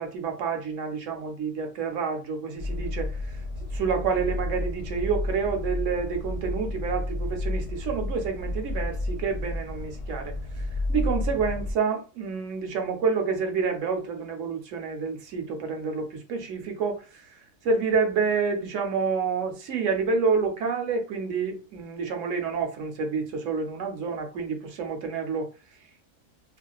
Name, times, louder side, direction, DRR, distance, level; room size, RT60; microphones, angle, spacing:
voice 1, 0.0-3.3 3.7-17.3 17.6-25.5, right 5 dB, 65° right, 0.8 m, -28 dB
sound 1, 2.6-11.7, left 2 dB, 55° left, 0.8 m, -31 dB
2.4 x 2.4 x 2.2 m
omnidirectional pair, 1.6 m